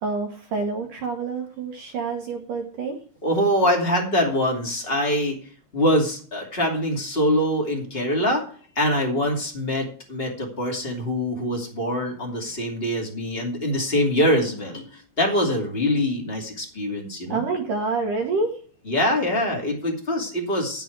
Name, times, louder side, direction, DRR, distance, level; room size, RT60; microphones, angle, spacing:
voice 1, 0.0-3.0 17.3-18.6, right 4 dB, 70° right, 3 dB, 2.0 m, -27 dB
voice 2, 3.2-5.4 5.7-8.4 8.7-17.4 18.9-20.8, left 1 dB, 30° left, 1 dB, 1.0 m, -24 dB
10.5 x 9.1 x 4.6 m, 0.43 s
omnidirectional pair, 5.8 m